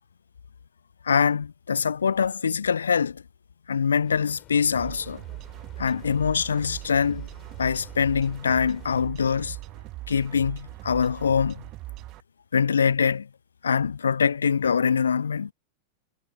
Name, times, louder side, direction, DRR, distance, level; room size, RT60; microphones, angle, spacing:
voice 1, 1.0-3.2 3.7-5.2 5.8-7.3 7.6-9.6 10.1-11.6 12.5-13.3 13.6-15.5, left 6 dB, 70° left, 0.3 m, -24 dB
sound 1, 4.0-9.0, left 14 dB, 35° left, 5.9 m, -52 dB
sound 2, 4.7-12.2, right 18 dB, 40° right, 0.9 m, -40 dB
figure-of-eight pair, 90°, 0 cm